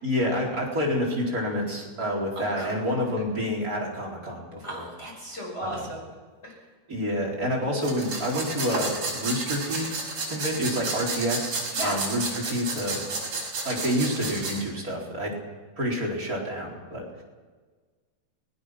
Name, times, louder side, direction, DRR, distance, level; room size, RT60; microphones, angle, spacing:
voice 1, 0.0-4.8 5.6-5.9 6.9-13.0 13.6-15.3 15.8-17.2, equal, 20° right, -3 dB, 4.5 m, -28 dB
voice 2, 2.4-2.9 4.6-6.0 6.4-6.5 11.7-12.0, equal, 15° left, -2 dB, 6.0 m, -35 dB
sound 1, 7.8-14.6, right 3 dB, 45° right, 6.8 m, -32 dB
28.0 x 19.5 x 6.1 m, 1.4 s
omnidirectional pair, 5.0 m